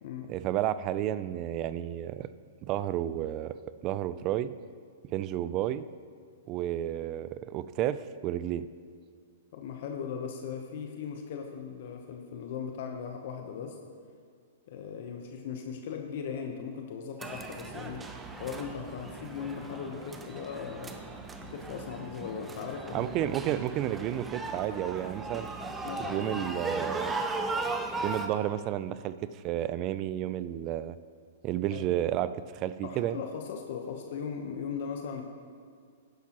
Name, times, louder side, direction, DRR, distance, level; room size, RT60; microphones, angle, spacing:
voice 1, 0.3-2.3 2.6-3.6 3.8-4.5 5.1-5.8 6.5-8.7 22.9-25.5 26.0-27.1 28.0-31.0 31.4-33.2, right 12 dB, 35° right, 15 dB, 0.4 m, -31 dB
voice 2, 9.5-13.8 14.7-18.1 18.3-20.9 21.4-23.3 25.8-26.5 31.7-31.9 32.8-35.2, left 6 dB, 60° left, 3 dB, 0.9 m, -38 dB
sound 1, 17.2-28.3, right 3 dB, 10° right, 0.7 m, -37 dB
12.0 x 10.5 x 3.0 m, 2.1 s
hypercardioid pair, 135°, 0 cm